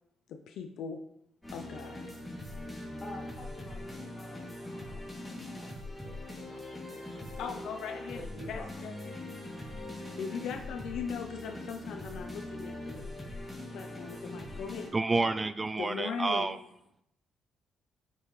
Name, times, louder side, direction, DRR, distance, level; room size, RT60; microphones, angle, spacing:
voice 1, 0.5-1.0 1.5-2.0 7.4-8.2 8.5-9.2 10.2-13.1 13.7-14.9 15.8-16.6, left 6 dB, 80° left, 5 dB, 0.6 m, -39 dB
sound 1, 1.4-14.9, left 1 dB, 10° left, 2.6 m, -42 dB
voice 2, 3.0-5.0 5.6-8.9, left 1 dB, 40° left, -2 dB, 2.1 m, -49 dB
voice 3, 14.9-16.6, right 3 dB, 25° right, 12 dB, 0.4 m, -29 dB
9.8 x 5.4 x 3.2 m, 0.78 s
cardioid pair, 90°, 0 cm